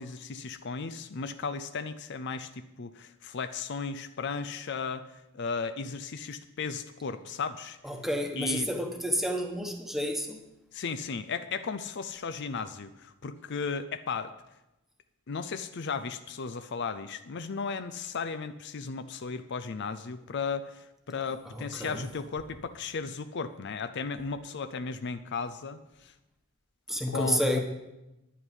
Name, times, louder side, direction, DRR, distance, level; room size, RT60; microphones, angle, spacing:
voice 1, 0.0-7.8 8.3-8.7 10.7-14.3 15.3-26.1 27.1-27.6, left 5 dB, 55° left, 11 dB, 0.5 m, -35 dB
voice 2, 7.8-10.4 21.8-22.0 26.9-27.6, equal, ahead, 3 dB, 1.2 m, -30 dB
11.0 x 9.8 x 5.4 m, 0.94 s
head